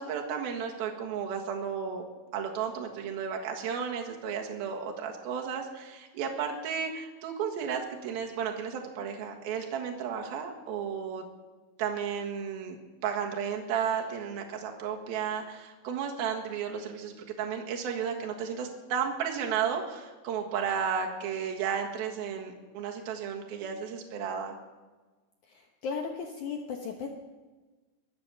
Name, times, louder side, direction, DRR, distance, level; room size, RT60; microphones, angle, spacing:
voice 1, 0.0-2.1 2.3-11.2 11.8-24.6, right 7 dB, 75° right, 2 dB, 3.4 m, -33 dB
voice 2, 25.4-27.1, left 5 dB, 65° left, 2 dB, 2.1 m, -36 dB
22.5 x 8.8 x 6.9 m, 1.3 s
omnidirectional pair, 4.4 m